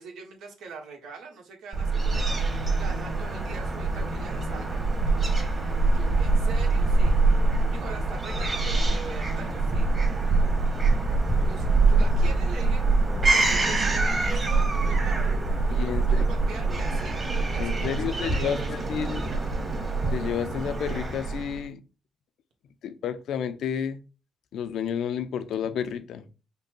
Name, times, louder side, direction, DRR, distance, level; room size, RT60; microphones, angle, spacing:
voice 1, 0.0-4.8 5.9-7.1 7.5-9.9 11.4-12.9 13.2-15.3 15.7-19.4, right 4 dB, 80° right, 1.4 m, -42 dB
Fowl / Gull seagull, 1.7-21.6, right 3 dB, 30° right, 1.7 m, -24 dB
voice 2, 15.7-16.2 17.6-19.2 20.1-21.8 22.8-24.0 24.5-26.2, left 8 dB, 75° left, 0.6 m, -31 dB
5.4 x 2.3 x 4.4 m
cardioid pair, 90°, 0 cm